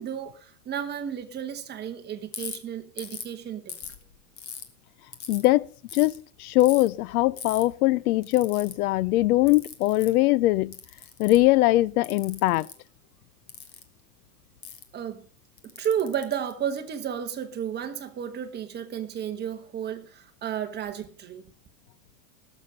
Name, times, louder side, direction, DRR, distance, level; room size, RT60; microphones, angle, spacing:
voice 1, 0.0-3.8 14.9-15.2 15.8-21.4, right 9 dB, 20° right, 1.2 m, -32 dB
Ratchet pawl, 2.3-2.6 3.0-3.3 3.7-4.6 5.1-5.5 5.9-6.2 6.6-6.9 7.4-7.6 8.2-8.7 9.5-10.1 10.7-11.5 12.0-12.7 13.5-13.8 14.6-14.8 15.6-17.0, left 8 dB, 40° left, 1.7 m, -40 dB
voice 2, 5.3-5.7 5.9-10.7 11.2-12.7, left 17 dB, 70° left, 0.5 m, -21 dB
17.5 x 7.2 x 5.1 m
supercardioid pair, 145°, 45 cm